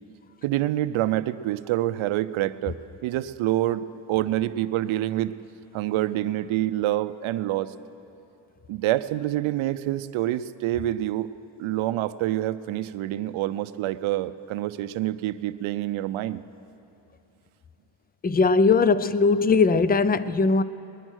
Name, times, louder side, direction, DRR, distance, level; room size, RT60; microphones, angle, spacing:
voice 1, 0.4-2.8 3.0-5.3 5.7-7.7 8.7-11.3 11.6-16.4, right 14 dB, 70° right, 13 dB, 0.7 m, -26 dB
voice 2, 18.2-20.6, left 4 dB, 20° left, 15 dB, 0.4 m, -20 dB
20.5 x 10.0 x 6.3 m, 2.8 s
cardioid pair, 80°, 50 cm